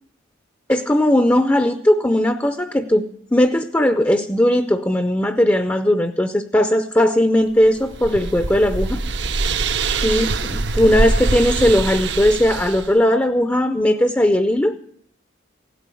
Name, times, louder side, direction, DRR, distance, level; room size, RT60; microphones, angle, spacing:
voice 1, 0.7-9.0 10.0-14.8, left 1 dB, 10° left, 9 dB, 0.6 m, -18 dB
sound 1, 7.6-12.9, right 3 dB, 60° right, 0.7 m, -23 dB
16.5 x 9.3 x 8.3 m, 0.67 s
head